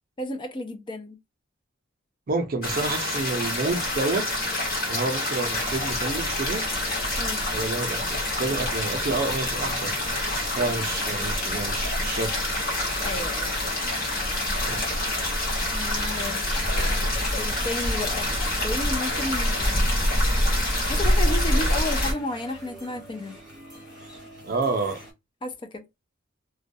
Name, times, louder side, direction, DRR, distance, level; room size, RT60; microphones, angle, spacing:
voice 1, 0.2-1.2 7.2-7.4 13.0-13.6 15.7-16.6 17.3-18.3 18.6-20.0 20.9-23.4 25.4-25.9, left 2 dB, 25° left, 0.4 m, -32 dB
voice 2, 2.3-4.3 4.9-6.6 7.5-9.9 10.4-12.3 14.6-15.0 24.4-25.0, right 3 dB, 50° right, 0.5 m, -29 dB
sound 1, 2.6-22.1, left 1 dB, 50° left, 1.0 m, -26 dB
sound 2, 5.5-25.1, equal, 5° right, 0.9 m, -43 dB
sound 3, 13.7-15.2 15.7-17.6 18.1-19.6 20.5-22.1, left 1 dB, 80° left, 1.1 m, -41 dB
2.2 x 2.2 x 2.6 m
head